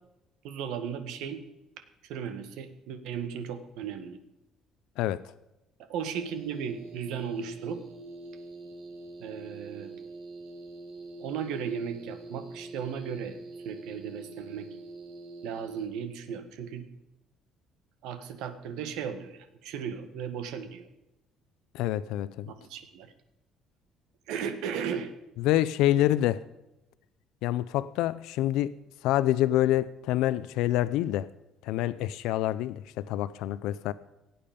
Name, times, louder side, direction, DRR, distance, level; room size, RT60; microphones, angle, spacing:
voice 1, 0.4-1.4 2.0-4.2 5.9-7.8 9.2-9.9 11.2-13.4 13.6-14.7 15.4-16.9 18.0-20.9 22.4-23.1 24.3-25.1, right 7 dB, 80° right, 1.7 m, -36 dB
sound 1, 6.0-15.9, right 3 dB, 60° right, 2.5 m, -44 dB
voice 2, 21.7-22.5 25.4-26.4 27.4-28.7 29.0-31.3 31.6-33.9, left 14 dB, 85° left, 0.5 m, -26 dB
17.0 x 8.7 x 5.2 m
cardioid pair, 170°, 0 cm